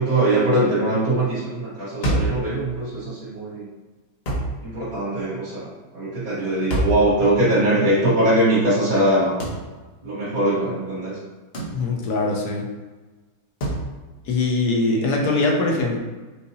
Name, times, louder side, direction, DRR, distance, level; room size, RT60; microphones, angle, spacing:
voice 1, 0.0-3.7 4.6-9.3 10.0-11.2 14.8-15.2, right 1 dB, 85° right, -13 dB, 2.1 m, -22 dB
sound 1, 2.0-2.4 4.2-4.6 6.7-7.1 9.4-9.6 11.5-11.8 13.6-13.9, right 1 dB, 50° left, 0.8 m, -24 dB
voice 2, 11.7-12.7 14.3-16.0, left 3 dB, 65° left, 0 dB, 1.1 m, -22 dB
5.5 x 2.7 x 2.7 m, 1.2 s
omnidirectional pair, 2.0 m